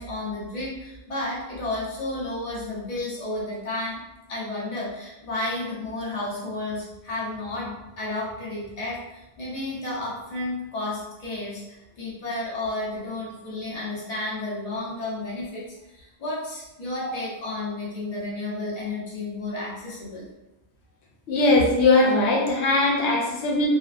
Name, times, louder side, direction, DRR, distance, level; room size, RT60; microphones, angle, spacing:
voice 1, 0.0-4.0 4.3-15.6 15.9-20.3, left 2 dB, 40° left, -7 dB, 0.8 m, -32 dB
voice 2, 21.3-23.7, left 2 dB, 90° left, -1 dB, 0.9 m, -20 dB
2.6 x 2.2 x 2.4 m, 0.95 s
omnidirectional pair, 1.1 m